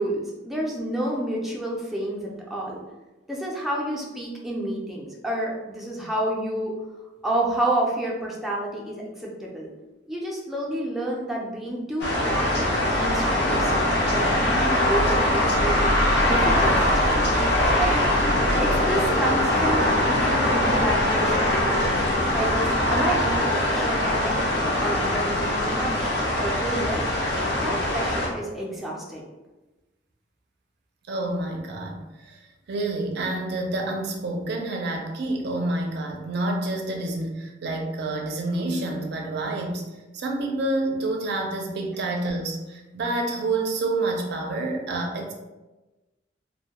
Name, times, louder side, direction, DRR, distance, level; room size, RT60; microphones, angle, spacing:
voice 1, 0.0-2.8 3.3-6.7 7.2-9.7 10.1-15.8 16.1-17.2 17.8-17.9 18.6-21.8 22.3-24.5 24.8-26.1 26.4-27.1 27.5-29.2, right 1 dB, ahead, -4 dB, 0.4 m, -29 dB
sound 1, 12.0-28.3, left 1 dB, 70° left, 0.6 m, -22 dB
voice 2, 31.1-32.4 32.7-39.8 40.1-45.3, right 2 dB, 60° right, 2 dB, 0.4 m, -28 dB
2.1 x 2.1 x 2.8 m, 1.1 s
head